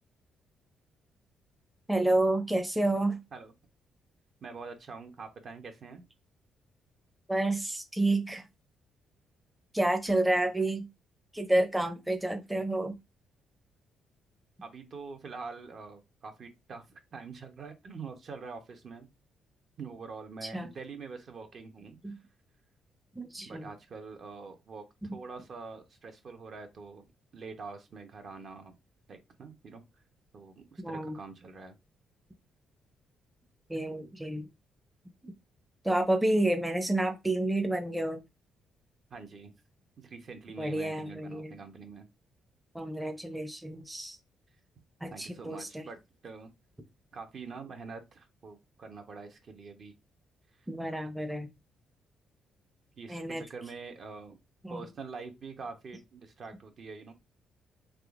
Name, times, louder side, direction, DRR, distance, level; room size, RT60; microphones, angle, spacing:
voice 1, 1.9-3.2 7.3-8.4 9.7-10.9 11.3-12.9 20.5-20.7 22.0-22.1 23.2-23.7 30.8-31.2 33.7-34.4 35.8-38.2 40.6-41.5 42.7-44.2 45.0-45.8 50.7-51.5 53.1-53.4 54.6-54.8, right 1 dB, 10° right, 0.6 m, -29 dB
voice 2, 4.4-6.0 10.4-10.5 14.6-19.1 19.8-22.2 23.4-24.8 25.1-27.0 27.3-28.7 29.1-29.8 30.3-31.8 39.1-39.5 40.0-42.1 45.1-46.5 47.1-49.9 50.6-50.7 53.0-54.4 54.7-57.1, right 4 dB, 50° right, 0.7 m, -45 dB
3.6 x 2.8 x 2.4 m
cardioid pair, 90°, 0 cm